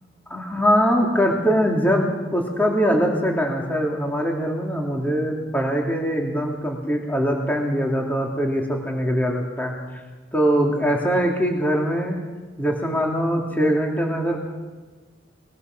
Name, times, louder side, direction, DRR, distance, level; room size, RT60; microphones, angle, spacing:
voice 1, 0.3-10.0 10.3-12.2 12.6-14.4, equal, 10° left, 0 dB, 2.8 m, -22 dB
21.5 x 20.5 x 6.1 m, 1.3 s
head